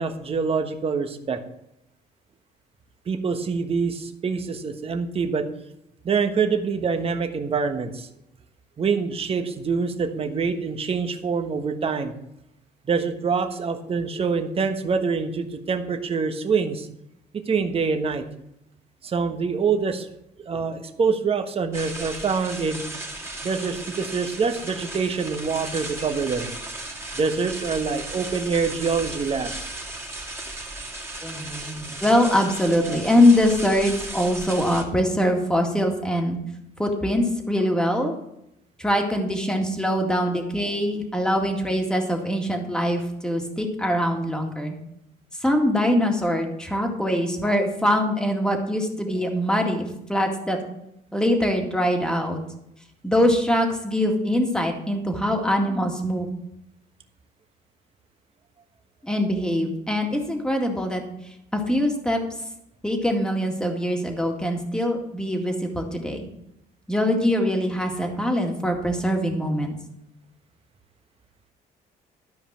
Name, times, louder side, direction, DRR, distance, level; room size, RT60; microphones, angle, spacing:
voice 1, 0.0-1.4 3.1-5.5 6.0-8.1 8.8-12.1 12.8-16.9 17.3-18.2 19.0-20.1 20.4-22.9 23.4-26.5 27.1-29.7 32.8-33.0, right 5 dB, 35° right, 6 dB, 1.3 m, -25 dB
sound 1, 21.7-34.8, right 2 dB, 15° right, 2.3 m, -36 dB
voice 2, 31.2-36.4 36.8-38.2 38.8-44.7 45.4-50.6 51.1-52.4 53.0-56.3 59.0-61.0 61.5-62.2 62.8-66.3 66.9-69.7, left 1 dB, 5° left, 2 dB, 2.1 m, -23 dB
13.0 x 5.2 x 7.4 m, 0.82 s
cardioid pair, 110°, 17 cm